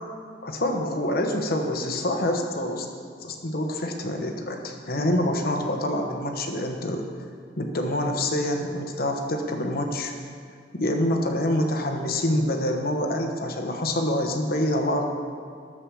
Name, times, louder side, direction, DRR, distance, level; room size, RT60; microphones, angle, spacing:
voice 1, 0.4-2.9 3.2-7.1 7.6-10.1 10.7-15.0, left 1 dB, 55° left, 3 dB, 1.1 m, -26 dB
11.5 x 7.7 x 6.3 m, 2.2 s
head